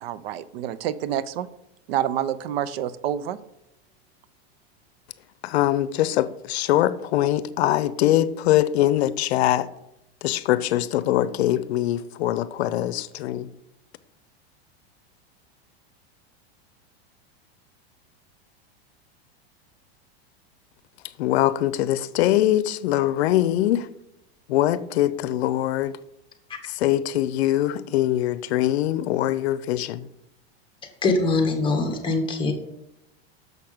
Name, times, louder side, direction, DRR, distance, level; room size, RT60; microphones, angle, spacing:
voice 1, 0.0-1.5 1.9-3.4, right 11 dB, 65° right, 0.6 m, -28 dB
voice 2, 5.4-9.7 10.2-13.5 21.2-23.9 24.5-26.0 26.6-30.1, left 13 dB, 80° left, 0.6 m, -22 dB
voice 3, 31.0-32.5, left 3 dB, 15° left, 1.4 m, -22 dB
6.7 x 5.9 x 5.0 m
supercardioid pair, 140°, 31 cm